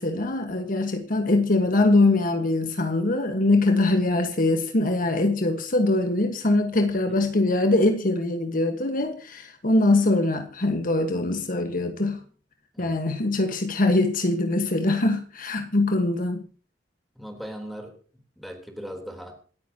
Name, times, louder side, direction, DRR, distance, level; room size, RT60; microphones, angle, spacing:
voice 1, 0.0-12.2 12.8-16.4, left 2 dB, 50° left, 1.4 m, -23 dB
voice 2, 17.2-18.0 18.4-19.4, equal, ahead, 3.5 m, -39 dB
27.0 x 9.3 x 2.9 m
head